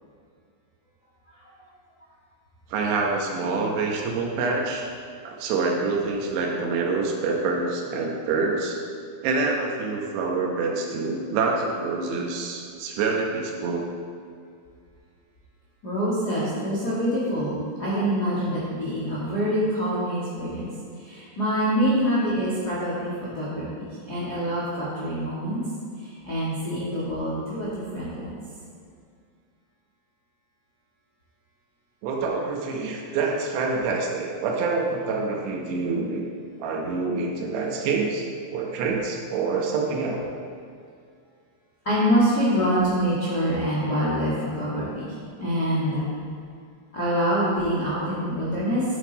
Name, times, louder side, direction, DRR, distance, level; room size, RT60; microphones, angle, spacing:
voice 1, 2.7-4.9 5.2-8.8 9.2-13.8 32.0-36.3 36.6-40.2, right 4 dB, 75° right, 0 dB, 3.0 m, -26 dB
voice 2, 15.8-20.7 21.0-25.6 26.2-28.4 41.8-45.1 45.4-46.1 46.9-48.8, equal, 90° left, -9 dB, 0.8 m, -25 dB
10.5 x 8.0 x 4.0 m, 2.2 s
omnidirectional pair, 5.4 m